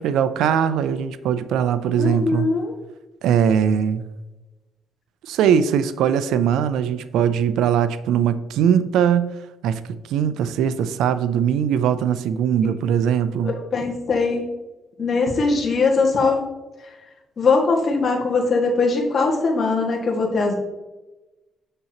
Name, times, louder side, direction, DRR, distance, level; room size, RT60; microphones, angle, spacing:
voice 1, 0.0-2.5 3.2-4.0 5.2-9.3 9.6-9.8 10.1-13.6, right 8 dB, 85° right, 13 dB, 0.4 m, -20 dB
voice 2, 2.0-2.7 13.4-14.4 15.0-16.4 17.4-20.5, left 4 dB, 45° left, -1 dB, 1.8 m, -20 dB
7.1 x 6.6 x 2.9 m, 1.1 s
cardioid pair, 90°, 0 cm